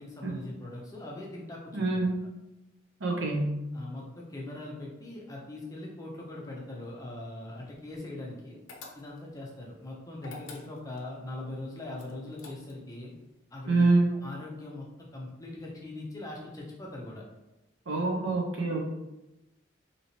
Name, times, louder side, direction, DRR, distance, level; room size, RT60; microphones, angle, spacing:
voice 1, 0.0-2.1 3.7-8.6 8.9-13.1 13.5-14.9 15.1-17.2, left 2 dB, 15° left, -2 dB, 0.5 m, -41 dB
voice 2, 1.7-2.2 3.0-3.6 13.7-14.1 17.9-18.8, right 3 dB, 75° right, -1 dB, 0.7 m, -26 dB
sound 1, 8.7-9.4 10.2-11.1 12.0-12.9, left 3 dB, 80° left, 0.5 m, -47 dB
3.0 x 2.8 x 2.8 m, 0.97 s
head